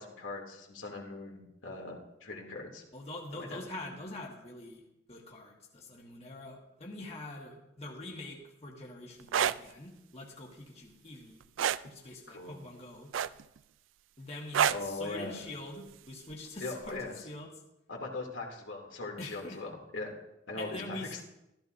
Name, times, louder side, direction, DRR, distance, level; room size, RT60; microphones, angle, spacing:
voice 1, 0.0-2.8 3.3-3.9 12.3-12.6 14.7-15.4 16.6-17.1 17.9-20.1 20.5-21.2, left 2 dB, 90° left, 0 dB, 2.8 m, -40 dB
voice 2, 2.9-4.8 5.1-11.4 11.8-13.1 14.2-17.5 19.2-19.6 20.6-21.2, left 2 dB, 35° left, -1 dB, 1.5 m, -44 dB
sound 1, 9.2-9.6 11.6-11.9 13.1-13.6 14.5-14.9 16.3-16.5, right 9 dB, 80° right, 0.3 m, -27 dB
14.5 x 13.5 x 2.7 m, 0.87 s
head